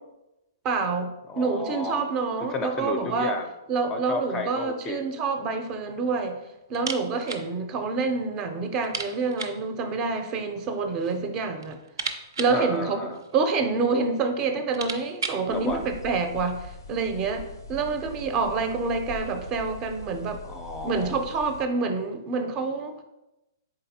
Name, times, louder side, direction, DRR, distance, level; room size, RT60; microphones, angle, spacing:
voice 1, 0.6-3.3 3.7-6.4 6.7-11.8 12.4-13.0 13.3-20.4 20.8-23.0, right 4 dB, 30° right, 7 dB, 0.5 m, -27 dB
voice 2, 1.3-2.1 2.5-3.5 3.9-5.0 12.5-13.2 15.5-15.9 20.4-21.2, left 3 dB, 20° left, 6 dB, 0.4 m, -32 dB
sound 1, 6.7-7.5 7.8-7.9 8.2-8.3 8.8-9.7 10.6-11.2 11.5-13.5 14.2-14.3 14.6-15.5, right 4 dB, 85° right, 0.4 m, -35 dB
sound 2, 15.5-21.6, left 2 dB, 90° left, 0.5 m, -42 dB
4.0 x 3.8 x 2.8 m, 0.94 s
hypercardioid pair, 130°, 2 cm